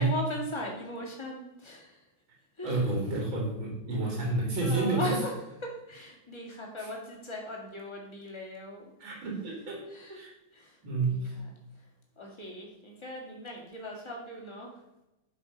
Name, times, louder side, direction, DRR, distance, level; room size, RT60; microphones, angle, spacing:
voice 1, 0.0-2.0 2.6-3.0 4.6-5.3 5.6-8.9 9.9-10.2 10.5-10.7 11.0-11.5 12.2-14.7, left 1 dB, 15° left, -1 dB, 2.5 m, -38 dB
voice 2, 2.6-5.2 6.8-6.9 9.0-9.8 10.1-10.3 10.8-11.3, right 3 dB, 70° right, -1 dB, 3.3 m, -30 dB
11.5 x 6.8 x 5.5 m, 0.94 s
omnidirectional pair, 2.3 m